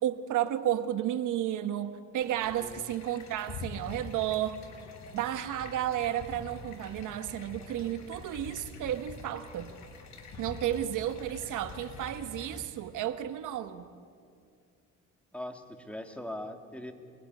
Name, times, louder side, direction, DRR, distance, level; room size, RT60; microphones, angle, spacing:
voice 1, 0.0-4.6 5.1-9.7 10.4-13.9, right 11 dB, 85° right, 10 dB, 1.4 m, -32 dB
sound 1, 2.2-12.7, left 3 dB, 65° left, 4.7 m, -46 dB
voice 2, 15.3-16.9, left 1 dB, 5° left, 5 dB, 2.7 m, -40 dB
26.5 x 20.0 x 9.8 m, 2.3 s
cardioid pair, 90°, 30 cm